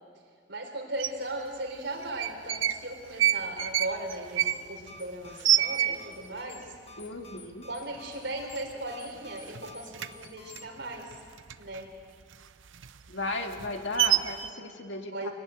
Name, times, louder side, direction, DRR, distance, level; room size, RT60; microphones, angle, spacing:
voice 1, 0.5-6.7 7.6-11.1 11.6-11.9 15.1-15.3, right 1 dB, 65° right, 2 dB, 4.1 m, -37 dB
sound 1, 1.0-1.1 2.0-2.8 3.1-6.3 6.7-6.8 7.0-7.5 7.9-8.1 8.4-9.2 9.5-11.8 12.2-14.5, right 12 dB, 85° right, 0.7 m, -28 dB
sound 2, 4.2-10.7, left 3 dB, 30° left, 1.9 m, -51 dB
voice 2, 7.0-7.7 13.1-15.3, left 2 dB, 70° left, 4 dB, 2.1 m, -35 dB
23.5 x 18.0 x 9.2 m, 2.1 s
head